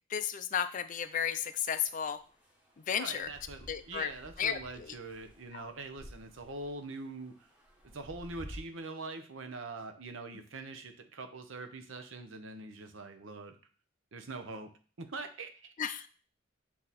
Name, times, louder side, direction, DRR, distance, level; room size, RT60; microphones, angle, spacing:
voice 1, 0.1-2.2 2.8-3.3 3.7-4.1 4.4-5.0 5.5-5.7 15.8-16.1, left 8 dB, 40° left, 11 dB, 0.4 m, -33 dB
sound 1, 0.9-8.6, equal, 5° right, 1.3 m, -53 dB
voice 2, 3.0-7.5 7.8-13.6 14.1-14.7 15.0-15.7, right 3 dB, 70° right, 7 dB, 0.8 m, -43 dB
8.4 x 2.9 x 4.1 m, 0.39 s
head